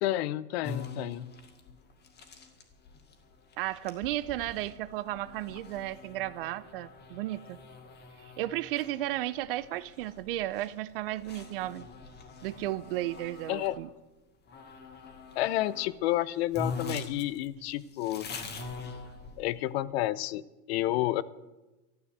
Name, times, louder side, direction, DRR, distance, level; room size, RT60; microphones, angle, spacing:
voice 1, 0.0-1.3 13.5-13.8 15.4-18.3 19.4-20.4 20.7-21.2, left 15 dB, 45° left, 19 dB, 0.6 m, -30 dB
sound 1, 0.6-13.8 14.5-15.9 16.2-16.3 16.5-19.6, left 3 dB, 20° left, 2.0 m, -44 dB
voice 2, 3.6-7.6 8.2-11.9 12.4-13.9, right 15 dB, 40° right, 18 dB, 0.5 m, -34 dB
13.5 x 11.0 x 7.9 m, 1.1 s
hypercardioid pair, 135°, 46 cm